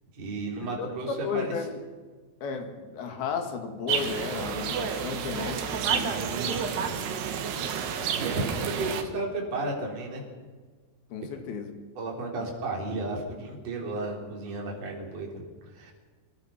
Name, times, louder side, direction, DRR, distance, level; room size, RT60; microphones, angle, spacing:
voice 1, 0.1-1.5 6.1-7.0 8.1-10.2 12.0-15.9, right 2 dB, 40° right, -1 dB, 4.7 m, -33 dB
voice 2, 0.8-1.8 2.4-6.7 11.1-11.7 12.4-12.5, left 5 dB, 65° left, 5 dB, 3.9 m, -34 dB
sound 1, 3.9-9.0, right 7 dB, 75° right, 3.5 m, -30 dB
25.0 x 19.0 x 5.8 m, 1.4 s
omnidirectional pair, 4.8 m